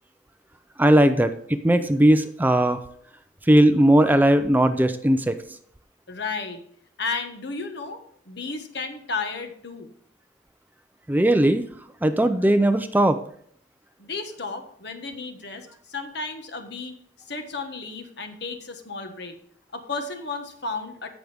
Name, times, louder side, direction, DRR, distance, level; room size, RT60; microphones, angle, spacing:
voice 1, 0.8-2.8 3.5-5.4 11.1-11.6 12.0-13.2, right 1 dB, 10° right, 9 dB, 0.5 m, -18 dB
voice 2, 6.1-6.6 7.0-8.0 8.3-9.9 14.0-17.0 17.3-19.4 19.7-21.1, left 4 dB, 60° left, 6 dB, 1.4 m, -33 dB
16.0 x 6.3 x 3.5 m, 0.63 s
head